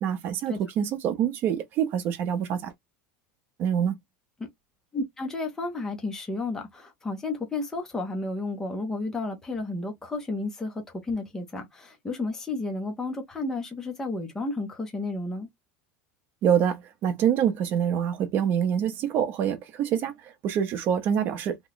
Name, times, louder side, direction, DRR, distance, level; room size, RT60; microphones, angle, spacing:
voice 1, 0.0-2.7 3.6-3.9 16.4-21.6, right 8 dB, 35° right, 0.7 m, -26 dB
voice 2, 4.9-15.5, left 2 dB, 10° left, 0.7 m, -32 dB
3.0 x 2.2 x 3.9 m
supercardioid pair, 165°, 6 cm